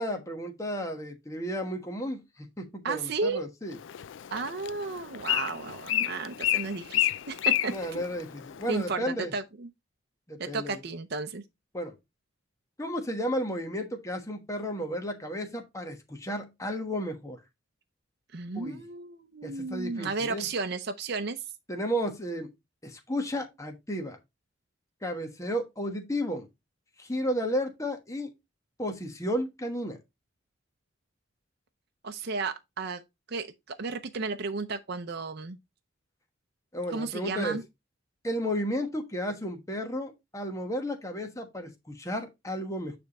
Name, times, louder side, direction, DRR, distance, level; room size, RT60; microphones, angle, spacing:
voice 1, 0.0-3.8 7.7-9.3 10.3-10.8 11.7-11.9 12.8-17.4 18.5-18.8 19.4-20.5 21.7-22.5 22.8-24.2 25.0-26.5 27.0-28.3 28.8-30.0 36.7-37.6 38.2-42.9, equal, 15° left, 1.2 m, -33 dB
voice 2, 2.8-3.5 4.3-7.7 8.7-9.7 10.4-11.4 18.3-21.4 32.0-33.0 33.3-35.6 36.9-37.6, right 4 dB, 55° right, 0.7 m, -33 dB
Bird, 3.7-8.9, left 13 dB, 70° left, 0.4 m, -31 dB
9.4 x 3.5 x 4.1 m
head